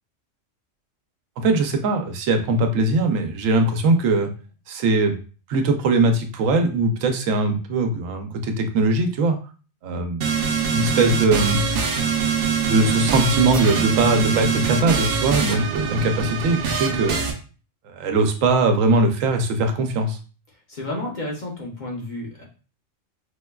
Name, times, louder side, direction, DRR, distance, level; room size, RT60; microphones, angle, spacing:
voice 1, 1.4-4.3 4.7-5.2 5.5-9.4 9.8-10.2 10.7-11.6 12.7-17.2 17.9-20.2, right 2 dB, 90° right, 6 dB, 1.0 m, -20 dB
sound 1, 10.2-17.3, right 5 dB, 60° right, 0.7 m, -23 dB
voice 2, 20.7-22.4, left 1 dB, 45° left, -1 dB, 0.7 m, -31 dB
4.5 x 2.2 x 2.2 m, 0.37 s
omnidirectional pair, 1.3 m